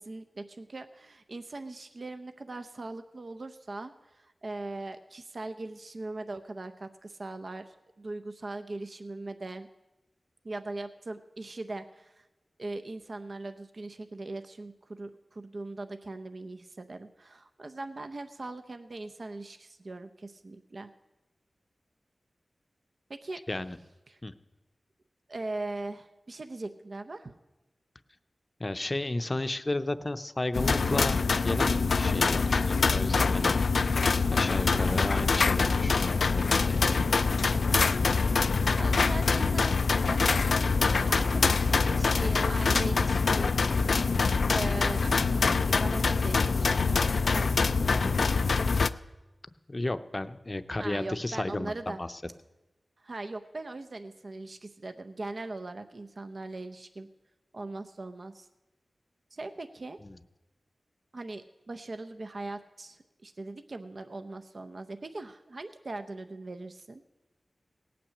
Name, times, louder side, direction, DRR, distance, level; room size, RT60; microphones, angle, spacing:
voice 1, 0.0-9.7 10.4-12.3 12.6-20.9 23.1-23.4 24.1-24.2 25.3-27.3 34.7-35.3 37.7-37.9 38.7-40.4 40.9-43.6 44.5-48.3 50.8-52.0 53.0-57.1 57.5-58.5 59.3-60.0 61.1-67.0, right 2 dB, 55° right, 8 dB, 0.6 m, -40 dB
voice 2, 28.6-33.6 34.3-36.8 49.7-52.1 60.0-60.2, left 2 dB, 30° left, 11 dB, 0.6 m, -33 dB
sound 1, 30.5-48.9, left 4 dB, 80° left, 0.3 m, -25 dB
17.5 x 6.0 x 8.4 m, 1.1 s
wide cardioid pair, 60°, 0 cm